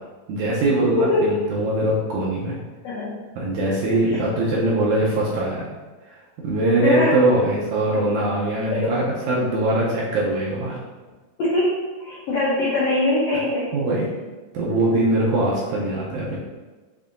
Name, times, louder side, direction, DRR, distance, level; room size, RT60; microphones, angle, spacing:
voice 1, 0.3-2.5 3.4-5.7 6.1-6.2 6.4-10.7 13.7-14.1 14.5-16.4, right 2 dB, 80° right, -5 dB, 1.8 m, -22 dB
voice 2, 1.0-1.3 2.8-3.2 3.9-4.2 6.8-7.2 8.7-8.9 11.4-13.8, left 2 dB, 90° left, -7 dB, 1.4 m, -22 dB
7.0 x 2.7 x 2.5 m, 1.3 s
omnidirectional pair, 4.1 m